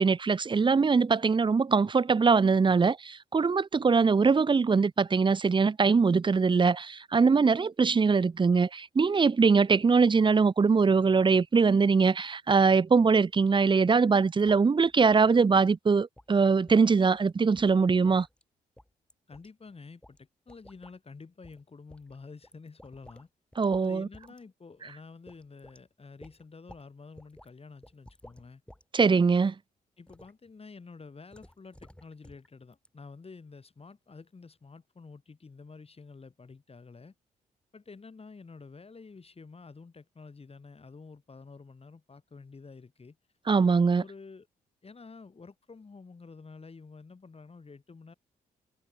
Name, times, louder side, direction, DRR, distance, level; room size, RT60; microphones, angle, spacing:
voice 1, 0.0-18.3 23.6-24.1 28.9-29.5 43.5-44.0, right 5 dB, 30° right, 0.7 m, -22 dB
sound 1, 14.4-14.6 14.9-15.0 15.4-15.7 16.2-16.3 16.7-16.9 17.1-17.3 17.6-18.4 18.8-19.5 20.0-20.2 20.5-20.9 21.4-21.6 21.9-23.3 23.5-23.9 24.1-24.4 24.8-24.9 25.3-25.8 26.2-26.9 27.2-27.5 27.8-28.8 29.2-29.5 30.1-30.3 31.3-32.5 32.7-32.9, left 1 dB, 5° left, 4.5 m, -54 dB
voice 2, 19.3-23.3 23.8-28.6 30.0-37.1 37.7-43.2 44.0-44.5 44.8-48.1, left 4 dB, 40° left, 4.8 m, -49 dB
supercardioid pair, 55°, 16 cm